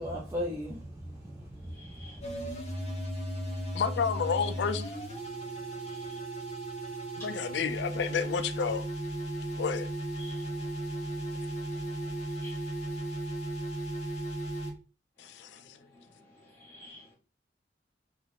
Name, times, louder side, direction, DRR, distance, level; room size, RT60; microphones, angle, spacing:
voice 1, 0.0-2.5, equal, 15° right, 0.5 m, -38 dB
voice 2, 1.7-2.2 2.5-2.6 2.9-3.0 5.2-6.2 9.5-9.6 10.2-10.6 11.1-12.7 15.9-17.1, left 1 dB, 15° left, 1.5 m, -54 dB
sound 1, 2.2-14.7, right 1 dB, 40° left, 0.8 m, -36 dB
voice 3, 3.7-4.9 7.2-8.8 9.6-9.9 15.2-15.8, left 6 dB, 70° left, 0.3 m, -31 dB
3.3 x 2.3 x 2.4 m
head